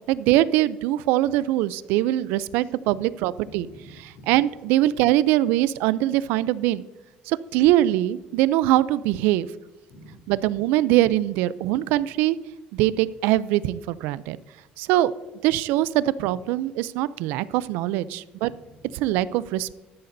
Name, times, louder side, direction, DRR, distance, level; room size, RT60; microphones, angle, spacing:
voice 1, 0.1-3.7 4.3-6.8 7.3-9.5 10.3-12.4 12.7-14.4 14.8-15.1 15.4-18.5 19.0-19.7, right 14 dB, 75° right, 18 dB, 0.4 m, -22 dB
voice 2, 2.6-3.0 3.4-4.4 4.9-5.0 9.9-10.3 11.7-11.8 16.3-16.4 18.4-18.9, left 1 dB, 65° left, 3 dB, 2.4 m, -49 dB
12.5 x 10.5 x 2.6 m, 1.1 s
cardioid pair, 175°, 3 cm